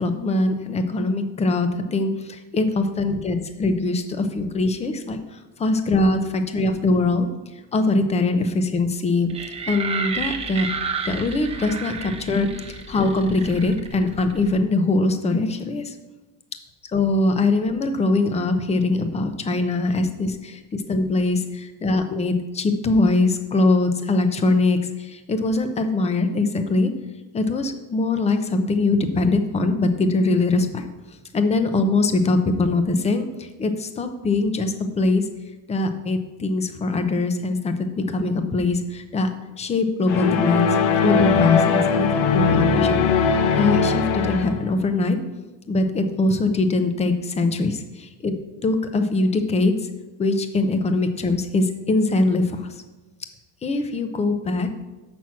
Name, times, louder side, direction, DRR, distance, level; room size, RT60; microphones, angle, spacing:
voice 1, 0.0-5.2 5.6-7.3 7.7-9.3 9.7-10.7 11.1-15.9 16.9-26.9 27.3-30.8 31.3-35.2 35.7-39.3 39.6-43.0 43.3-45.2 45.7-47.8 48.2-48.3 48.6-49.7 50.2-52.6 53.6-54.7, left 2 dB, 15° left, 8 dB, 0.7 m, -22 dB
sound 1, 9.3-14.6, right 5 dB, 15° right, 0.8 m, -31 dB
sound 2, 40.1-44.7, left 5 dB, 75° left, 1.1 m, -20 dB
6.1 x 6.1 x 7.2 m, 1.1 s
cardioid pair, 140°, 42 cm